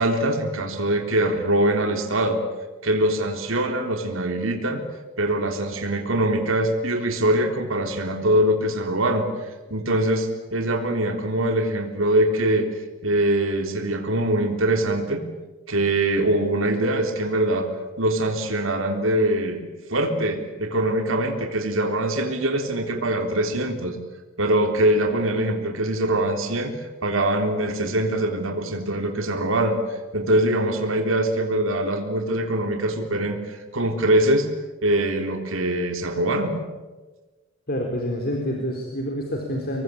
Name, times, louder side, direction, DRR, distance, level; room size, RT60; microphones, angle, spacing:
voice 1, 0.0-2.4 2.8-4.8 5.2-9.3 9.7-12.7 13.0-15.2 15.7-17.7 18.0-19.6 19.9-24.0 24.4-34.5 34.8-36.6, right 1 dB, 80° right, 4 dB, 3.7 m, -23 dB
voice 2, 37.7-39.8, equal, 50° left, 2 dB, 4.0 m, -27 dB
25.5 x 23.0 x 8.7 m, 1.2 s
head